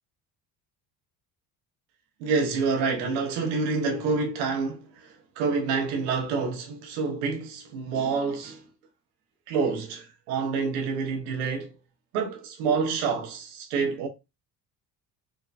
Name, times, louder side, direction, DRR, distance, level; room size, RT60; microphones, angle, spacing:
voice 1, 2.2-8.6 9.5-11.8 12.1-14.1, right 4 dB, 90° right, 1.2 m, -28 dB
4.8 x 2.3 x 2.4 m
supercardioid pair, 70°, 48 cm